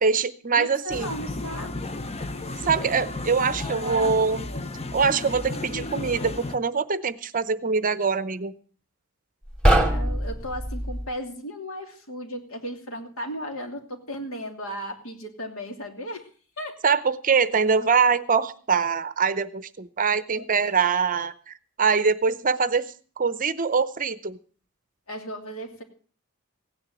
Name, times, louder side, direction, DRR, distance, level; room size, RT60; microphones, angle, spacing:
voice 1, 0.0-1.1 2.6-4.5 4.9-8.5 16.8-22.9 23.2-24.4, right 5 dB, 35° right, 14 dB, 0.7 m, -23 dB
voice 2, 0.5-1.7 3.6-4.1 9.9-16.2 16.6-16.8 20.3-20.4 25.1-25.8, equal, 65° left, 4 dB, 2.8 m, -35 dB
sound 1, 0.9-6.6, left 2 dB, 30° left, 0.7 m, -33 dB
sound 2, 9.5-11.1, right 1 dB, 5° left, 2.4 m, -22 dB
16.5 x 9.9 x 6.2 m, 0.42 s
head